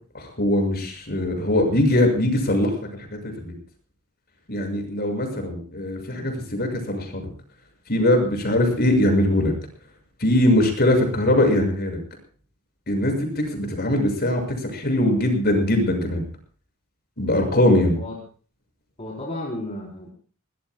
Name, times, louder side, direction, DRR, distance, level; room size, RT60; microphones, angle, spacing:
voice 1, 0.1-2.7 3.1-3.5 4.5-7.3 7.9-9.5 10.2-12.0 12.9-16.2 17.2-18.0, left 1 dB, 45° left, 4 dB, 6.7 m, -21 dB
voice 2, 19.0-20.1, left 1 dB, 30° left, -4 dB, 4.1 m, -33 dB
23.0 x 20.5 x 2.3 m, 0.41 s
head